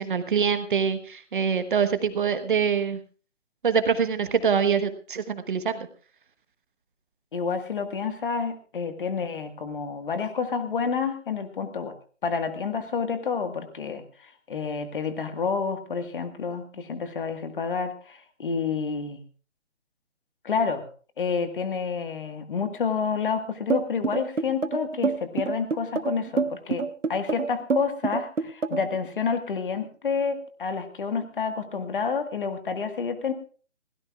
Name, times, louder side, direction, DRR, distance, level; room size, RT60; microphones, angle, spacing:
voice 1, 0.0-3.0 3.6-5.9, right 6 dB, 45° right, 10 dB, 1.2 m, -24 dB
voice 2, 7.3-11.9 12.2-19.2 20.4-20.9 21.2-26.8 27.1-33.3, left 5 dB, 45° left, 8 dB, 1.7 m, -29 dB
sound 1, 23.7-29.0, right 4 dB, 90° right, 1.2 m, -27 dB
21.5 x 17.0 x 2.4 m, 0.39 s
figure-of-eight pair, 150°, 37 cm